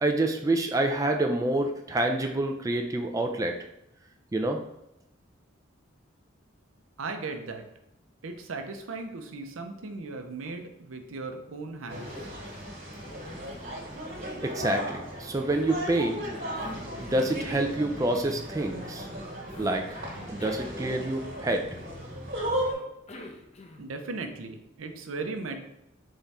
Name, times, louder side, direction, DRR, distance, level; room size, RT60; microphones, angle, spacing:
voice 1, 0.0-3.6 4.3-4.6 14.4-16.3 17.0-19.1 19.6-20.0 20.3-21.6, right 2 dB, 15° right, 3 dB, 0.3 m, -27 dB
voice 2, 7.0-7.6 8.2-12.3 23.8-25.6, right 3 dB, 85° right, 5 dB, 0.6 m, -37 dB
Cough, 11.8-12.7 12.9-15.0 15.5-17.5 19.5-21.5 22.7-24.0, left 2 dB, 35° left, 0.6 m, -47 dB
sound 1, 11.9-22.7, equal, 50° right, 1.4 m, -36 dB
3.7 x 3.4 x 4.1 m, 0.82 s
head